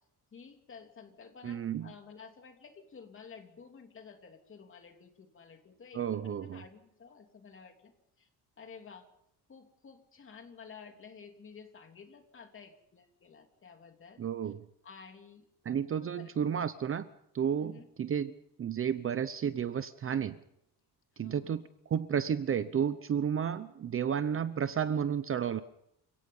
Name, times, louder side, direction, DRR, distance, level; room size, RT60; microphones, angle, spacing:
voice 1, 0.3-7.9 8.2-8.3 8.6-9.1 9.5-14.5 14.8-15.4 16.0-16.3 17.6-17.9 21.1-21.6, left 5 dB, 30° left, 5 dB, 3.2 m, -52 dB
voice 2, 1.4-1.9 5.9-6.6 14.2-14.6 15.7-17.1 17.3-20.4 21.2-25.6, right 8 dB, 35° right, 13 dB, 0.8 m, -32 dB
29.5 x 17.5 x 5.5 m, 0.77 s
cardioid pair, 155°, 39 cm